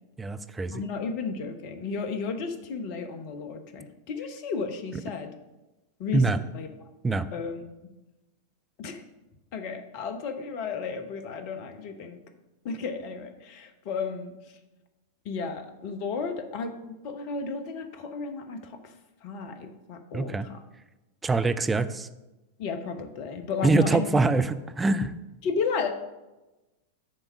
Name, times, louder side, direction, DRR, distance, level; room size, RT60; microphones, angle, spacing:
voice 1, 0.2-0.8 6.1-6.4 7.0-7.3 20.1-20.5 21.2-22.1 23.6-25.1, right 3 dB, 10° right, 10 dB, 0.5 m, -24 dB
voice 2, 0.7-5.3 6.0-6.7 7.3-7.9 8.8-9.0 9.5-12.2 12.6-14.3 15.2-18.9 19.2-20.6 22.6-24.1 25.4-25.9, left 5 dB, 45° left, 7 dB, 0.9 m, -33 dB
8.7 x 3.6 x 6.3 m, 1.0 s
figure-of-eight pair, 90°, 0 cm